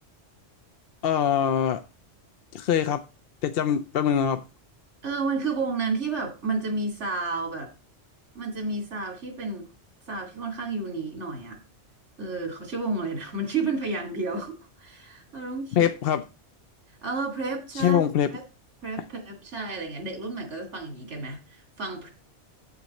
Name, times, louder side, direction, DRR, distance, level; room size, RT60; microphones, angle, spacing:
voice 1, 1.0-1.8 2.5-3.0 3.4-4.4 15.8-16.2 17.7-18.3, left 9 dB, 60° left, 0.7 m, -23 dB
voice 2, 5.0-7.7 8.3-9.7 10.1-11.6 12.2-15.9 17.0-18.4 18.8-22.1, right 3 dB, 85° right, 2.5 m, -31 dB
8.2 x 6.9 x 4.1 m
omnidirectional pair, 1.2 m